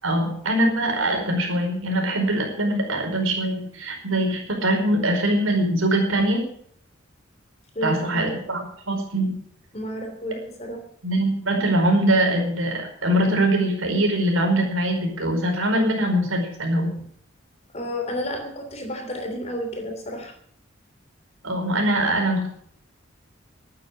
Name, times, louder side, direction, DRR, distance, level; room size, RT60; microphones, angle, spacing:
voice 1, 0.0-6.4 7.8-9.4 11.0-16.9 21.4-22.5, right 1 dB, 80° right, 2 dB, 4.9 m, -22 dB
voice 2, 7.7-8.4 9.7-10.8 17.7-20.3, equal, 30° left, 4 dB, 3.0 m, -31 dB
12.5 x 9.4 x 8.3 m, 0.62 s
head